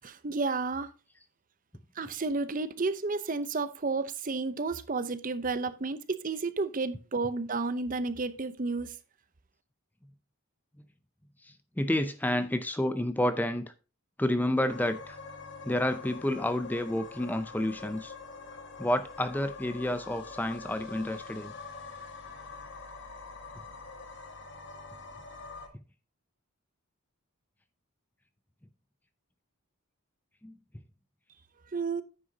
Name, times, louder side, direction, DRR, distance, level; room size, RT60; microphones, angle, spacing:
voice 1, 0.0-0.9 2.0-9.0 31.7-32.0, right 3 dB, 35° right, 0.7 m, -31 dB
voice 2, 11.4-13.7 14.2-15.2 15.6-18.1 18.8-21.5 30.4-30.6, left 1 dB, 10° left, 0.5 m, -30 dB
sound 1, 14.7-25.7, left 4 dB, 55° left, 1.6 m, -45 dB
9.8 x 7.9 x 2.8 m
head